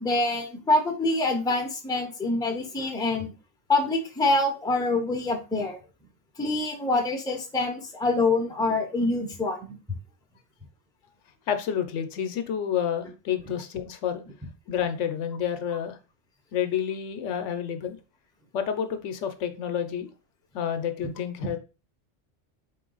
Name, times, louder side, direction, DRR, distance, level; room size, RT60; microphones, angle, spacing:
voice 1, 0.0-3.3 3.7-5.8 6.4-9.8, left 2 dB, 5° left, 2 dB, 0.6 m, -25 dB
voice 2, 11.5-14.2 14.7-16.0 16.5-18.0 18.5-20.1 20.5-21.6, left 8 dB, 75° left, 8 dB, 0.9 m, -29 dB
4.1 x 3.0 x 3.8 m, 0.32 s
omnidirectional pair, 1.3 m